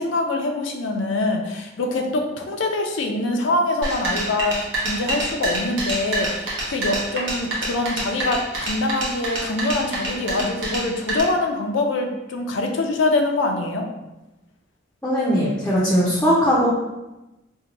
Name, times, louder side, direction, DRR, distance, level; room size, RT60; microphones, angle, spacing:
voice 1, 0.0-13.9, left 2 dB, 80° left, 3 dB, 0.5 m, -24 dB
sound 1, 3.8-11.2, right 2 dB, 80° right, 0.8 m, -27 dB
voice 2, 15.0-16.7, equal, 10° left, -6 dB, 0.5 m, -19 dB
2.7 x 2.2 x 3.9 m, 1.0 s
head